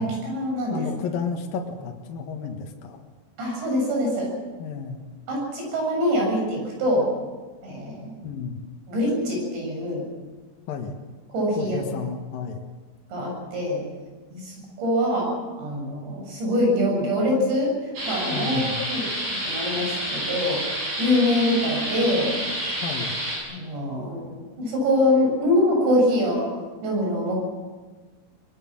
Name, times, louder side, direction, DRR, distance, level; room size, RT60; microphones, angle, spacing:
voice 1, 0.0-0.9 3.4-4.3 5.3-7.1 7.6-8.1 8.9-10.0 11.3-11.8 13.1-13.8 14.3-15.3 15.6-18.6 18.9-19.1 19.4-22.4 23.5-26.5 26.8-27.4, left 1 dB, 85° right, 0 dB, 10.0 m, -24 dB
voice 2, 0.7-3.0 4.6-5.0 8.2-8.6 10.7-10.9 11.6-12.6 18.3-18.9 22.8-23.2, left 5 dB, 60° left, 2 dB, 3.0 m, -32 dB
sound 1, 18.0-23.4, right 1 dB, 50° right, 9.8 m, -29 dB
24.0 x 20.0 x 7.5 m, 1.3 s
omnidirectional pair, 5.0 m